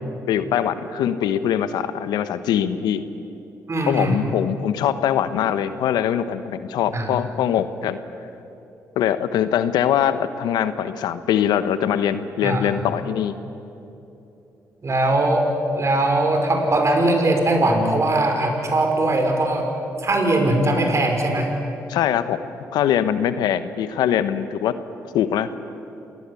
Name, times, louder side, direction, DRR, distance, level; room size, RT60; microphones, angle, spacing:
voice 1, 0.3-3.0 3.9-8.0 9.0-13.3 21.9-22.4 22.7-24.7 25.1-25.5, left 10 dB, 80° left, 12 dB, 1.1 m, -22 dB
voice 2, 3.7-4.2 6.9-7.1 12.4-12.8 14.8-15.5 15.7-19.7 20.0-21.5, right 2 dB, 45° right, 4 dB, 5.5 m, -20 dB
27.5 x 19.5 x 8.5 m, 2.9 s
supercardioid pair, 50°, 7 cm